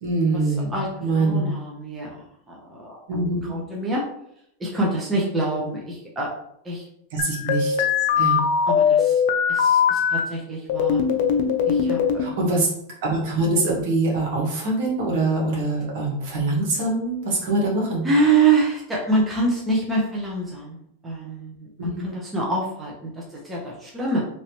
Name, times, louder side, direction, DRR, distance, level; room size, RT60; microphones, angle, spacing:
voice 1, 0.0-1.5 3.1-3.5 7.1-7.7 8.2-8.4 12.2-12.7 13.0-18.1 21.8-22.1, right 2 dB, 65° right, -2 dB, 1.3 m, -24 dB
voice 2, 1.2-3.0 3.5-4.0 4.6-6.3 6.6-6.8 8.1-9.2 9.5-11.0 11.6-12.2 18.0-20.8 21.0-24.2, right 3 dB, 10° right, -4 dB, 0.7 m, -25 dB
sound 1, 7.2-10.2 10.7-12.3, left 7 dB, 60° left, 0.5 m, -20 dB
3.1 x 2.7 x 2.9 m, 0.73 s
supercardioid pair, 150°, 0 cm